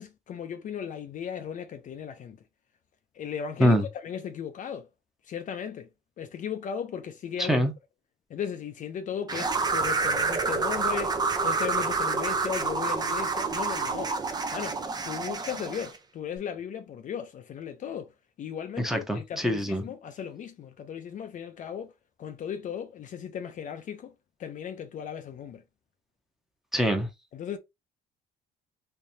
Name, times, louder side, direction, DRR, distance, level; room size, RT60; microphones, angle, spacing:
voice 1, 0.0-2.4 3.1-4.9 5.2-5.9 6.2-7.7 8.3-14.2 14.5-21.9 22.2-24.1 24.4-25.6 27.3-27.6, left 8 dB, 50° left, 0.6 m, -36 dB
voice 2, 7.4-7.7 18.8-19.8 26.7-27.1, equal, ahead, 1.0 m, -24 dB
sound 1, 9.3-16.0, right 4 dB, 25° right, 0.6 m, -28 dB
3.3 x 3.3 x 2.8 m
cardioid pair, 110°, 17 cm